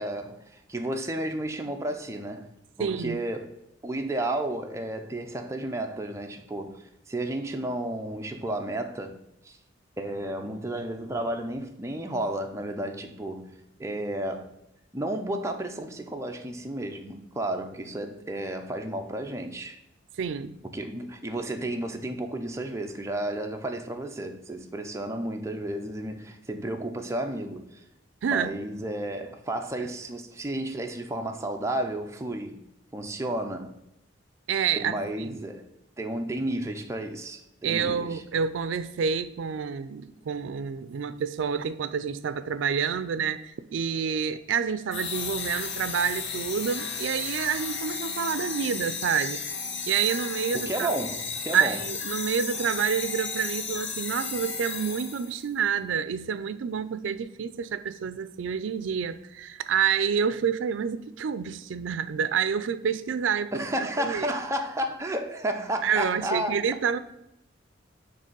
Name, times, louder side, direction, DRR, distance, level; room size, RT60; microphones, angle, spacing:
voice 1, 0.0-2.5 2.8-3.5 3.8-9.2 9.4-9.6 10.0-13.5 13.8-14.5 14.9-19.8 20.7-27.8 28.3-32.6 32.9-33.7 34.7-35.7 36.0-38.2 50.5-51.8 63.5-66.6, right 1 dB, 15° right, 0.5 m, -32 dB
voice 2, 2.8-3.2 20.2-20.6 28.2-28.5 34.5-35.4 37.6-49.4 49.9-50.9 51.5-64.3 65.8-67.0, right 7 dB, 80° right, 0.4 m, -28 dB
sound 1, 44.9-55.4, left 5 dB, 65° left, 0.9 m, -34 dB
6.6 x 3.3 x 5.3 m
head